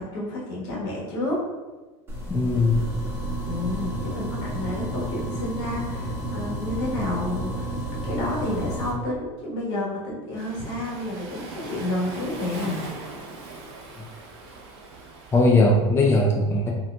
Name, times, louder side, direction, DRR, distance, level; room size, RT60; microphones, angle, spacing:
voice 1, 0.0-1.4 3.4-7.7 8.0-12.8, left 1 dB, 70° left, -4 dB, 1.3 m, -30 dB
sound 1, 2.1-8.9, right 1 dB, 15° right, 1.0 m, -31 dB
voice 2, 2.3-2.9 15.3-16.7, left 2 dB, 15° left, -2 dB, 0.4 m, -19 dB
Waves surf, 10.3-15.5, right 2 dB, 65° right, 0.8 m, -39 dB
3.6 x 2.8 x 2.2 m, 1.2 s
supercardioid pair, 115°, 15 cm